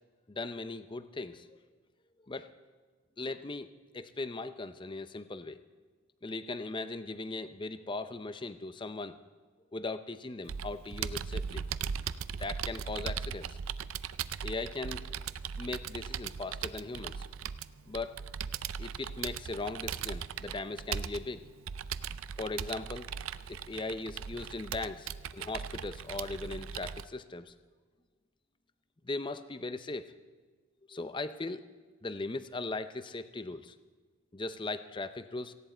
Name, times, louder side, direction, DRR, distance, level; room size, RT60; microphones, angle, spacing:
voice 1, 0.3-1.5 2.3-2.5 3.2-3.7 3.9-5.6 6.2-9.2 9.7-11.6 12.3-13.6 14.4-15.0 15.6-17.3 17.9-18.2 18.8-21.4 22.4-23.1 23.5-27.5 29.0-30.1 30.9-31.6 32.0-33.7 34.3-35.5, left 3 dB, 25° left, 12 dB, 0.6 m, -38 dB
Computer keyboard, 10.5-27.0, right 7 dB, 80° right, 0.5 m, -39 dB
18.0 x 16.0 x 4.4 m, 1.5 s
head